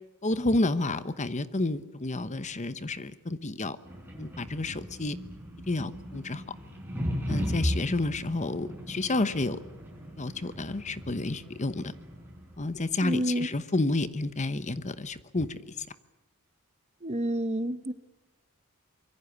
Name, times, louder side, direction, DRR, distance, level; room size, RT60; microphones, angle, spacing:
voice 1, 0.2-3.8 4.2-5.2 5.7-6.4 7.3-9.6 10.2-11.9 12.6-15.9, left 2 dB, 30° left, 13 dB, 1.0 m, -30 dB
sound 1, 3.8-12.6, equal, 10° right, 6.6 m, -37 dB
voice 2, 13.0-13.5 17.0-17.9, right 1 dB, 30° right, 12 dB, 1.2 m, -29 dB
25.0 x 23.0 x 8.2 m, 1.0 s
head